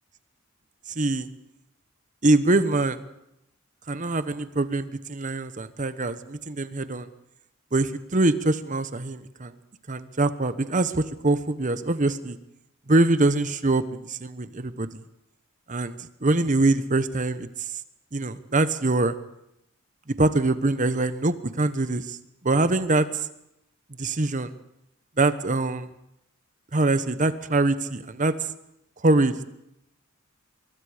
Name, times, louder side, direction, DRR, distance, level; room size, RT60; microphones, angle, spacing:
voice 1, 1.0-1.3 2.2-3.0 3.9-7.1 7.7-9.5 9.9-12.4 12.9-15.0 15.7-17.5 18.1-19.1 20.2-22.2 22.4-23.3 24.0-24.5 25.2-25.9 26.7-28.3 29.0-29.5, right 2 dB, 40° right, 12 dB, 1.0 m, -24 dB
24.5 x 23.0 x 5.0 m, 0.83 s
head